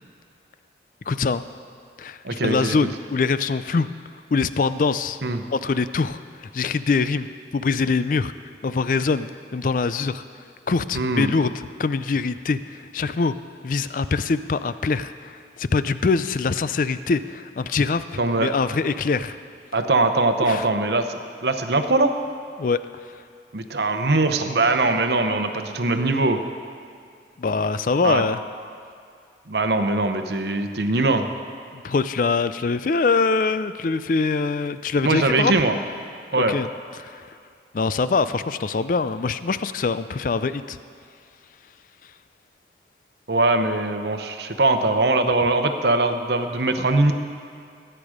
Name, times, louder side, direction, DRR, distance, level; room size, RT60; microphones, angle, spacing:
voice 1, 1.1-1.4 2.0-3.9 4.3-5.2 5.5-8.3 8.6-10.2 10.7-13.3 13.6-15.3 15.6-19.4 20.5-20.7 22.6-22.8 27.4-28.4 31.8-35.5 36.5-36.7 37.0-37.2 37.7-40.8, left 4 dB, 45° left, 13 dB, 0.4 m, -23 dB
voice 2, 2.2-2.8 5.2-5.4 10.9-11.3 18.2-18.5 19.7-22.1 23.5-26.4 28.0-28.2 29.5-31.3 35.0-35.7 36.3-36.5 43.3-47.1, right 2 dB, 65° right, 7 dB, 0.9 m, -21 dB
20.0 x 8.9 x 5.0 m, 2.3 s
head